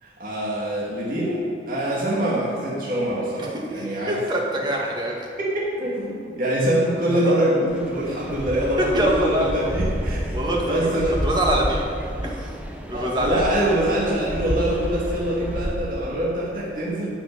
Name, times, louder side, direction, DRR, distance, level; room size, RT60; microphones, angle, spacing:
voice 1, 0.0-4.2 5.4-10.4 10.7-11.2 12.9-17.1, right 1 dB, 50° right, -6 dB, 2.4 m, -24 dB
voice 2, 3.4-5.3 7.2-7.3 8.8-9.8 10.3-12.6 12.9-13.5, equal, 25° right, -1 dB, 2.0 m, -25 dB
sound 1, 7.7-15.7, equal, 10° right, 0.9 m, -30 dB
14.0 x 6.1 x 9.6 m, 2.6 s
head